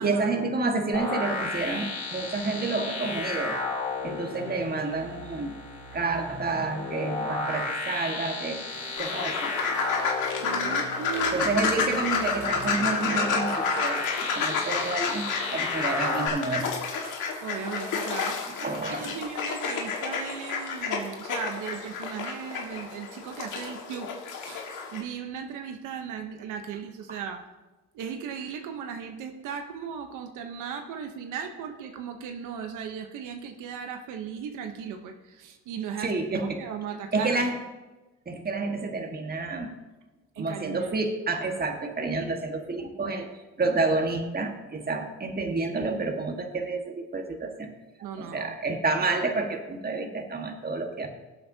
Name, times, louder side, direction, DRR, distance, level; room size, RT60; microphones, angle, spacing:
voice 1, 0.0-3.6 4.0-5.6 5.9-8.6 9.0-9.5 11.3-14.1 14.3-16.7 17.0-17.2 18.6-19.2 26.1-26.2 27.1-27.2 36.0-36.6 37.1-37.6 38.2-39.7 40.4-43.3 43.6-47.7 48.2-51.1, right 3 dB, 30° right, 4 dB, 1.6 m, -29 dB
sound 1, 0.9-16.3, left 3 dB, 65° left, 4.2 m, -34 dB
sound 2, 8.7-16.3, right 3 dB, 70° right, 3.9 m, -45 dB
sound 3, 9.0-25.0, left 5 dB, 90° left, 1.7 m, -30 dB
voice 2, 10.4-11.5 17.4-24.7 24.9-27.4 27.9-36.1 36.6-37.5 40.3-40.9 48.0-48.6, right 7 dB, 90° right, 5 dB, 0.9 m, -37 dB
18.0 x 7.9 x 2.8 m, 1.1 s
cardioid pair, 90°, 30 cm